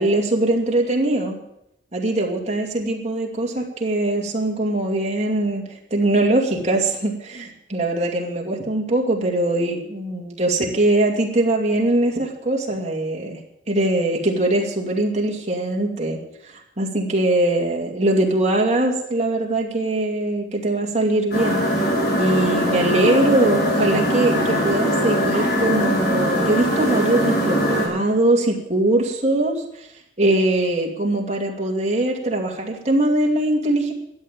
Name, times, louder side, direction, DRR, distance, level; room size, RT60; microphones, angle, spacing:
voice 1, 0.0-1.4 1.9-13.4 13.7-16.2 16.4-21.6 22.2-29.9 30.2-33.9, right 1 dB, 35° right, 0 dB, 2.5 m, -21 dB
sound 1, 21.3-27.9, equal, 55° left, 5.4 m, -21 dB
13.0 x 9.2 x 8.7 m, 0.81 s
head